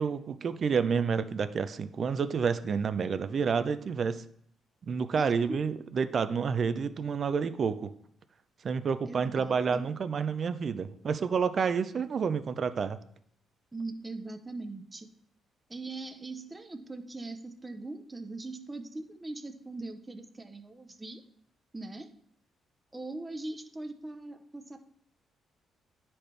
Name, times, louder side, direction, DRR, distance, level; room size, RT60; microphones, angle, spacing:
voice 1, 0.0-4.2 4.9-7.9 8.6-13.0, right 6 dB, 50° right, 12 dB, 0.5 m, -29 dB
voice 2, 5.2-5.6 9.0-9.8 13.7-15.1 15.7-21.2 21.7-22.1 22.9-24.8, right 2 dB, 20° right, 7 dB, 0.7 m, -41 dB
9.9 x 4.2 x 3.3 m, 0.68 s
cardioid pair, 90°, 0 cm